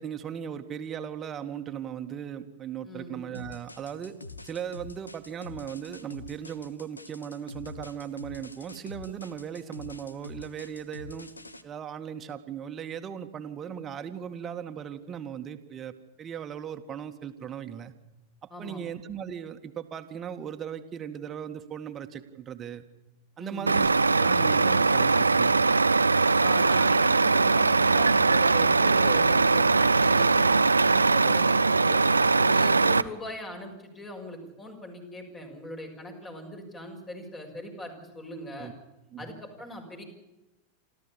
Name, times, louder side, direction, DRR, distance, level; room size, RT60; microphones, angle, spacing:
voice 1, 0.0-4.2 4.4-11.3 11.6-17.9 18.4-22.8 23.4-25.5 38.6-38.7 39.1-39.3, right 8 dB, 25° right, 7 dB, 2.2 m, -38 dB
voice 2, 2.8-3.2 18.5-18.8 23.4-23.7 26.4-32.0 32.4-38.7 39.2-40.0, left 1 dB, 20° left, 4 dB, 6.4 m, -40 dB
sound 1, 3.3-11.6, left 3 dB, 80° left, 1.5 m, -45 dB
Truck, 23.7-33.0, right 3 dB, 80° right, 0.7 m, -21 dB
27.5 x 14.0 x 8.7 m, 1.0 s
figure-of-eight pair, 90°, 0 cm